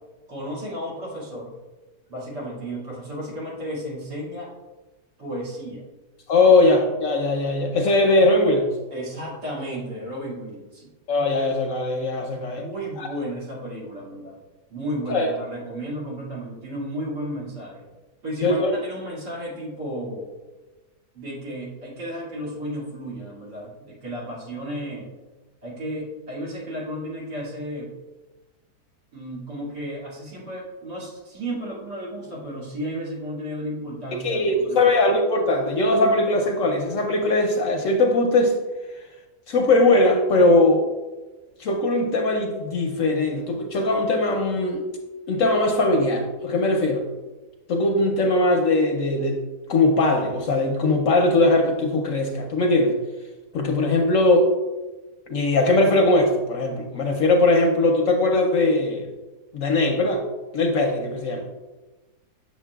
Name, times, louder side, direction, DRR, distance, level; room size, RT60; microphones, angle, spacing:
voice 1, 0.3-1.6 2.1-4.5 5.2-5.8 8.9-10.9 12.5-14.4 14.7-17.8 18.2-20.3 21.1-25.1 25.6-27.9 29.1-34.9, equal, 80° right, -7 dB, 2.9 m, -33 dB
voice 2, 6.3-8.7 11.1-12.6 13.0-13.1 15.1-15.3 18.4-18.8 34.1-38.5 39.5-40.8 41.6-44.8 45.3-47.1 47.7-49.4 49.7-53.0 53.5-54.5 55.3-59.1 59.5-60.2 60.5-61.5, left 2 dB, 65° left, 3 dB, 0.9 m, -20 dB
7.3 x 6.8 x 2.3 m, 1.2 s
omnidirectional pair, 1.8 m